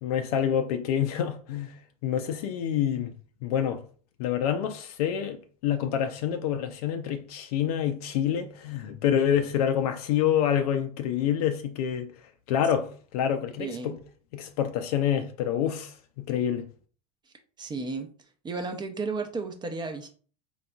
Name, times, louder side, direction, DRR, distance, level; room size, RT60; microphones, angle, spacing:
voice 1, 0.0-3.1 3.4-3.8 4.2-12.1 12.5-14.0 14.3-16.7, left 9 dB, 65° left, 0.5 m, -27 dB
voice 2, 13.6-14.0 17.6-18.1 18.4-20.1, right 4 dB, 20° right, 0.6 m, -33 dB
3.9 x 3.3 x 2.3 m
hypercardioid pair, 90°, 20 cm